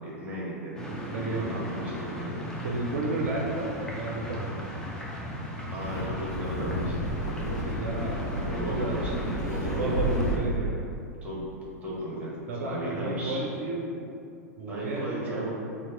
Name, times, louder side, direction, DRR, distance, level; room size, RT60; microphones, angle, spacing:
voice 1, 0.0-0.7 1.3-2.4 5.7-7.1 8.5-9.1 9.4-10.2 11.2-11.5 11.8-12.3 12.6-13.4 14.7-15.5, right 1 dB, 15° right, -6 dB, 1.0 m, -35 dB
sound 1, 0.8-10.4, equal, 10° left, 0.5 m, -36 dB
voice 2, 0.9-1.6 2.6-4.6 7.4-9.0 9.6-10.8 12.5-14.1 14.6-15.3, right 2 dB, 60° right, -3 dB, 0.4 m, -32 dB
Wind, 5.7-10.7, equal, 85° left, 0.4 m, -32 dB
2.8 x 2.4 x 3.6 m, 2.5 s
figure-of-eight pair, 95°, 9 cm